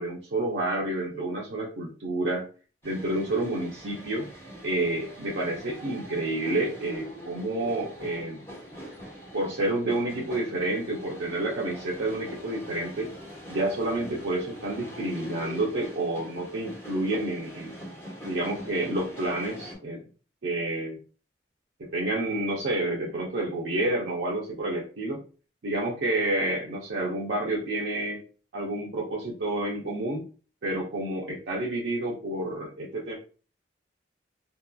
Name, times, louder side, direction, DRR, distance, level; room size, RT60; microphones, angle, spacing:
voice 1, 0.0-2.5 2.8-4.3 4.6-8.4 9.3-13.1 13.5-17.8 18.2-20.0 20.4-21.0 21.8-25.2 25.6-28.2 28.5-30.2 30.6-33.2, right 2 dB, 85° right, -4 dB, 0.6 m, -29 dB
sound 1, 2.8-19.8, equal, 15° left, 1.0 m, -43 dB
2.8 x 2.2 x 2.3 m, 0.36 s
head